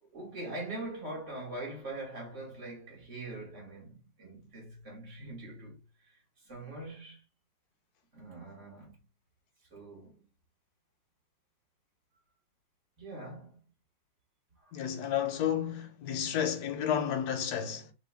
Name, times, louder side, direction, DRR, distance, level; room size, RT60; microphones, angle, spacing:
voice 1, 0.0-6.2 6.4-7.2 8.1-9.0 9.7-10.2 13.0-13.6 14.6-14.7, right 2 dB, 45° right, 1.7 m, -43 dB
voice 2, 14.7-17.9, left 9 dB, 65° left, 1.2 m, -31 dB
3.4 x 2.3 x 3.4 m
omnidirectional pair, 1.9 m